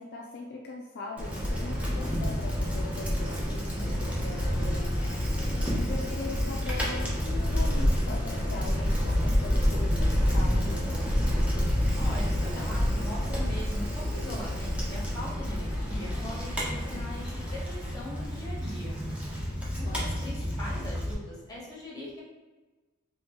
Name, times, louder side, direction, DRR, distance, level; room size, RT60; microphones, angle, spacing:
voice 1, 0.0-5.2 5.8-11.1 19.7-20.2, left 3 dB, 50° left, -1 dB, 0.4 m, -41 dB
Bicycle, 1.2-21.1, equal, 5° right, 0.7 m, -28 dB
voice 2, 5.5-5.9 12.0-19.0 19.8-22.2, left 1 dB, 15° left, -4 dB, 1.0 m, -41 dB
3.0 x 2.8 x 3.4 m, 1.2 s
head